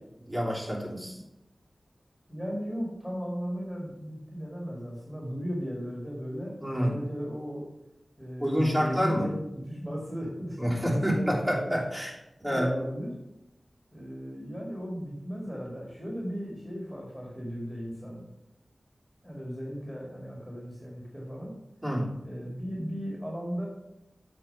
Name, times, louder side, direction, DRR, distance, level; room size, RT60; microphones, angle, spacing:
voice 1, 0.3-1.2 6.6-6.9 8.4-9.3 10.6-12.7 21.8-22.1, equal, 25° right, -4 dB, 3.2 m, -28 dB
voice 2, 2.3-7.7 8.2-9.3 9.7-11.7 12.4-13.1 13.9-18.2 19.2-21.6 22.2-23.7, equal, 5° right, -3 dB, 2.3 m, -36 dB
7.7 x 4.5 x 6.7 m, 0.90 s
cardioid pair, 50°, 0 cm